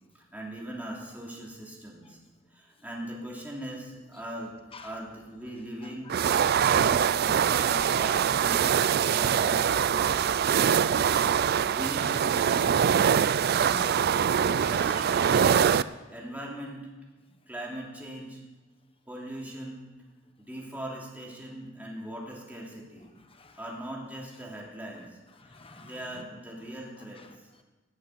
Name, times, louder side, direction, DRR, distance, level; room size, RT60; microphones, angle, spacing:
voice 1, 0.1-2.2 2.5-6.2 6.6-8.8 9.1-10.5 11.6-13.0 14.3-15.6 16.1-16.9 17.4-18.4 19.1-19.9 20.4-23.1 23.6-25.2 25.4-27.5, right 1 dB, 10° right, 3.0 m, -40 dB
sound 1, 6.1-15.8, right 8 dB, 50° right, 0.4 m, -23 dB
voice 2, 9.7-10.0 11.6-11.8 13.3-14.2 14.6-15.0 23.3-23.6 25.4-26.2 27.2-27.3, left 2 dB, 25° left, 1.0 m, -47 dB
18.5 x 8.5 x 6.3 m
head